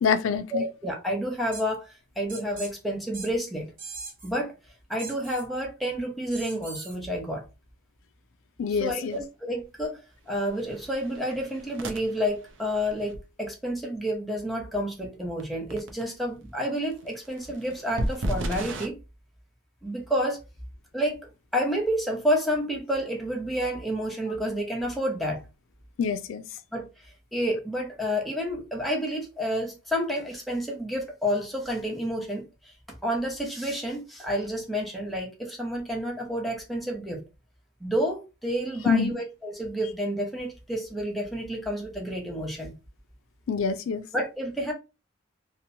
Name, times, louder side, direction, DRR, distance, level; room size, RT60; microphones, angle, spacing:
voice 1, 0.0-0.6 8.6-9.2 26.0-26.4 38.9-39.1 43.5-44.0, left 6 dB, 85° left, 0.3 m, -25 dB
voice 2, 0.5-1.9 2.2-3.7 4.2-4.5 4.9-7.4 8.7-10.0 10.3-19.0 19.8-20.4 20.9-25.4 26.7-26.9 27.3-32.4 33.0-37.2 37.8-42.7 44.1-44.7, equal, ahead, 0.7 m, -29 dB
sound 1, 1.5-1.6 2.3-2.7 3.1-3.3 3.8-4.3 5.0-5.4 6.3-7.0, right 3 dB, 45° right, 1.0 m, -40 dB
sound 2, 9.1-9.2 9.6-9.8 10.3-13.2 15.4-15.5 15.7-16.0 16.9-18.9, right 1 dB, 65° right, 0.5 m, -34 dB
2.9 x 2.1 x 2.6 m
head